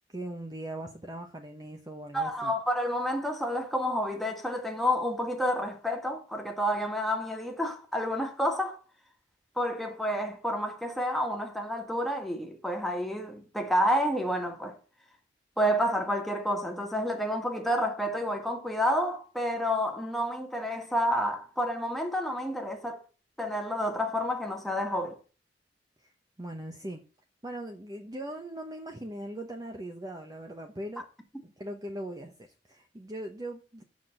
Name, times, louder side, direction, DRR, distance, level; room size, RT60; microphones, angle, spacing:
voice 1, 0.1-2.5 26.4-27.0 27.4-31.1 31.4-33.8, right 1 dB, 20° right, 0.9 m, -40 dB
voice 2, 2.1-8.8 9.6-14.7 15.6-23.0 23.4-25.2, equal, ahead, 1.7 m, -29 dB
7.4 x 6.0 x 7.4 m
head